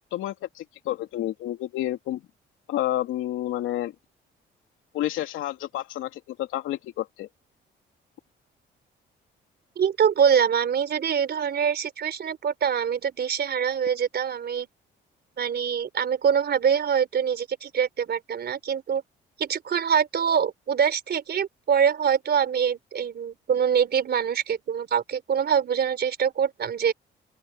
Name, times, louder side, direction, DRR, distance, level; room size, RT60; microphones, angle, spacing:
voice 1, 0.0-2.2 2.7-3.9 4.9-7.3, left 13 dB, 90° left, 2.7 m, -30 dB
voice 2, 9.8-14.7 15.4-19.0 19.4-26.9, right 7 dB, 55° right, 4.0 m, -24 dB
open air
cardioid pair, 90°, 20 cm